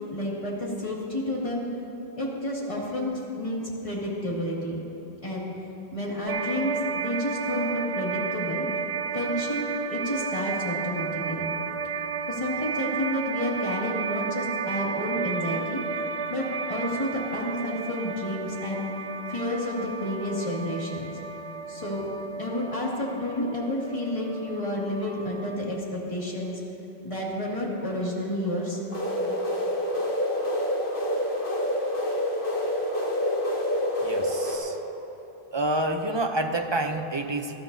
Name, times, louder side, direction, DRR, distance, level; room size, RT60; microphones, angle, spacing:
voice 1, 0.1-1.7 2.2-4.9 5.2-5.5 5.9-8.7 9.1-11.6 12.3-15.8 16.3-18.9 19.3-21.2 21.7-22.1 22.4-26.6 27.0-28.8, left 1 dB, 30° left, -5 dB, 2.3 m, -30 dB
sound 1, 6.3-25.6, right 5 dB, 90° right, 1.0 m, -33 dB
sound 2, 28.9-34.6, left 1 dB, 55° left, 2.0 m, -27 dB
voice 2, 34.0-34.8 35.5-37.5, right 1 dB, 30° right, 6 dB, 0.6 m, -28 dB
20.5 x 13.5 x 2.7 m, 3.0 s
omnidirectional pair, 1.1 m